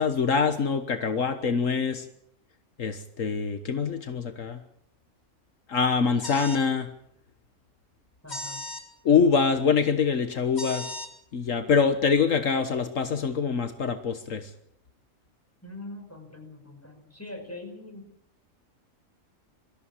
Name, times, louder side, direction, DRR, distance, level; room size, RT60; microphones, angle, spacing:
voice 1, 0.0-2.1 2.8-4.6 5.7-6.9 9.1-10.9 11.3-14.5, left 5 dB, 75° left, 8 dB, 1.7 m, -24 dB
sound 1, 6.2-6.6 8.3-8.8 10.5-11.1, left 1 dB, 35° left, 3.1 m, -36 dB
voice 2, 8.2-8.6 15.6-18.1, left 2 dB, 10° left, 3 dB, 5.7 m, -42 dB
24.5 x 14.0 x 8.8 m, 0.74 s
omnidirectional pair, 1.4 m